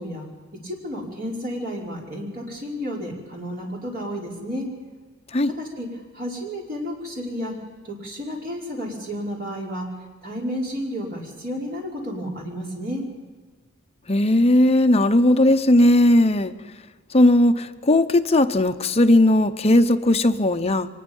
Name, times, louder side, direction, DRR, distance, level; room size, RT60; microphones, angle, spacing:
voice 1, 0.0-4.7 5.5-5.9 6.1-7.6 7.8-9.9 10.2-13.0, equal, 45° right, -2 dB, 5.3 m, -31 dB
voice 2, 14.1-16.5 17.1-20.9, left 1 dB, 30° left, 8 dB, 0.8 m, -17 dB
24.0 x 20.5 x 5.5 m, 1.4 s
head